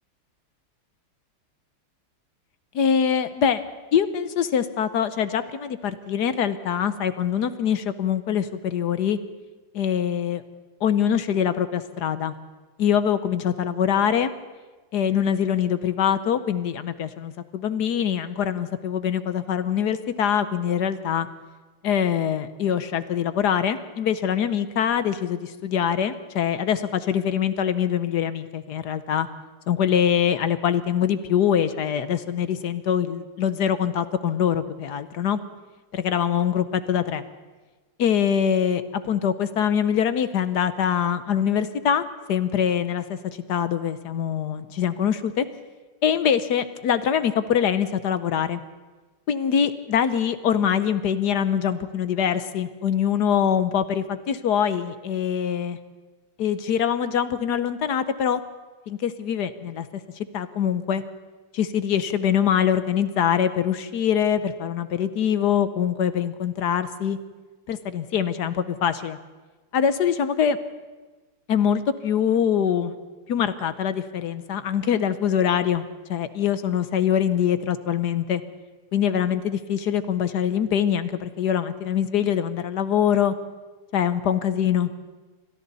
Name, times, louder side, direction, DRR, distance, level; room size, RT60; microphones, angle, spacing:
voice 1, 2.7-3.6 3.9-9.2 9.7-10.4 10.8-12.3 12.8-14.3 14.9-21.3 21.8-29.3 29.7-35.4 35.9-37.2 38.0-45.4 46.0-48.6 49.3-55.8 56.4-58.4 58.9-59.9 60.3-61.0 61.5-67.2 67.7-69.2 69.7-70.6 71.5-72.9 73.3-75.8 76.1-78.4 78.9-83.3 83.9-84.9, left 8 dB, 60° left, 12 dB, 1.2 m, -23 dB
28.5 x 24.5 x 4.1 m, 1.3 s
omnidirectional pair, 2.4 m